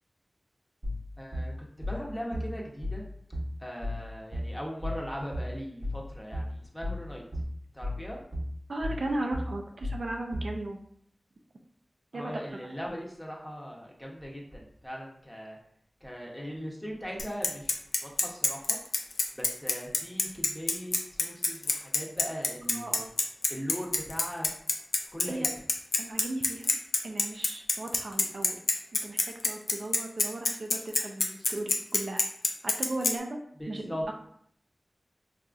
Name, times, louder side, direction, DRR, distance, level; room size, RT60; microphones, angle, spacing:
sound 1, 0.8-10.6, left 1 dB, 30° right, 0.8 m, -35 dB
voice 1, 1.2-1.5 1.8-3.0 3.6-6.5 6.7-7.2 7.7-8.2 12.1-15.6 16.0-18.8 19.3-23.0 23.5-24.5 25.1-25.5 33.6-34.0, equal, 10° left, -2 dB, 0.7 m, -39 dB
voice 2, 8.7-10.8 12.1-12.7 22.7-23.1 25.2-25.5 26.0-26.7 27.0-28.6 29.0-32.3 32.6-33.4 33.7-34.1, right 2 dB, 70° right, 2 dB, 0.4 m, -36 dB
Bicycle, 17.2-33.1, left 3 dB, 90° left, 0.4 m, -26 dB
4.0 x 2.4 x 2.4 m, 0.67 s
wide cardioid pair, 85°, 0 cm